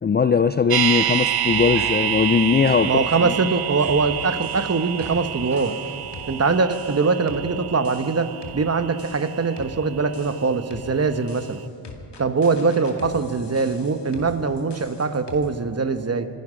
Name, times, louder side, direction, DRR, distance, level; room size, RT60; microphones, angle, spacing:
voice 1, 0.0-2.9 3.2-3.3, left 6 dB, 25° left, 11 dB, 0.3 m, -19 dB
sound 1, 0.7-10.7 11.0-11.1, right 11 dB, 55° right, 0.5 m, -28 dB
sound 2, 1.4-6.6, right 2 dB, 90° right, 4.7 m, -41 dB
voice 2, 2.8-5.8 6.3-11.6 12.2-16.3, right 4 dB, 35° right, 9 dB, 1.2 m, -22 dB
sound 3, 3.9-4.1 4.4-5.2 5.6-8.7 9.0-9.8 10.1-10.9 11.3-15.6, left 3 dB, 60° left, 2.3 m, -42 dB
25.5 x 11.0 x 5.1 m, 2.5 s
cardioid pair, 70°, 46 cm